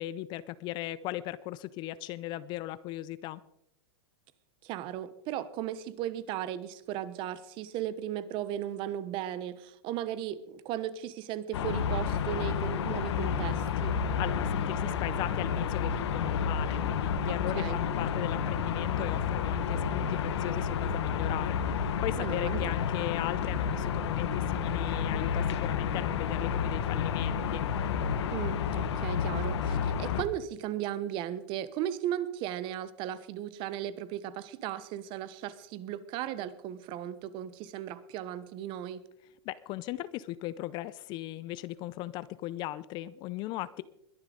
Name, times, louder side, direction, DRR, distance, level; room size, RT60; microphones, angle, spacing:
voice 1, 0.0-3.4 14.2-27.7 39.5-43.8, left 15 dB, 30° left, 17 dB, 0.5 m, -37 dB
voice 2, 4.6-14.0 17.3-17.8 22.2-22.6 28.3-39.0, right 11 dB, 35° right, 16 dB, 1.0 m, -36 dB
sound 1, 11.5-30.2, left 7 dB, 75° left, 1.5 m, -30 dB
21.5 x 11.0 x 3.9 m, 0.77 s
supercardioid pair, 145°, 14 cm